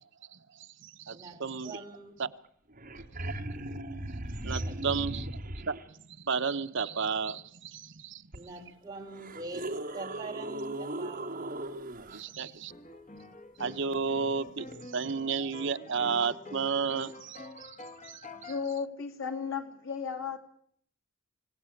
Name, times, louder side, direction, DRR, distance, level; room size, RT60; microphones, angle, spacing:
voice 1, 0.3-1.8 2.2-2.3 3.2-3.4 3.9-8.3 12.1-12.7 13.6-17.8 18.0-18.5, right 5 dB, 60° right, 0.9 m, -33 dB
voice 2, 1.1-2.1 4.4-4.8 8.3-11.3 12.0-12.2, right 2 dB, 20° right, 4.4 m, -44 dB
sound 1, 2.4-2.5 2.7-5.8 8.3-8.4 9.1-12.2 14.7-14.8, right 1 dB, 40° right, 2.4 m, -37 dB
sound 2, 12.7-18.7, left 2 dB, 35° left, 1.8 m, -47 dB
voice 3, 18.3-20.4, left 6 dB, 65° left, 2.8 m, -35 dB
27.0 x 17.0 x 8.5 m
head